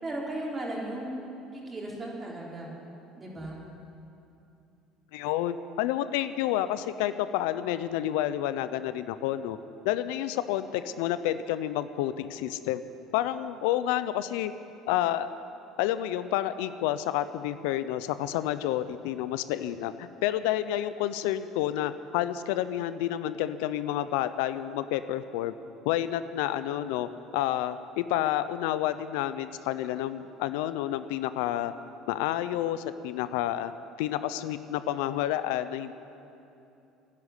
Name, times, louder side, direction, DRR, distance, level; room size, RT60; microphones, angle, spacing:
voice 1, 0.0-1.1 1.5-2.7 3.2-3.6, right 1 dB, 25° right, -3 dB, 3.8 m, -36 dB
voice 2, 5.1-9.6 9.8-12.8 13.1-14.5 14.9-15.3 15.8-25.5 25.8-31.7 32.1-33.7 34.0-35.9, left 12 dB, 85° left, 13 dB, 0.6 m, -29 dB
11.5 x 11.0 x 10.0 m, 2.8 s
supercardioid pair, 100°, 0 cm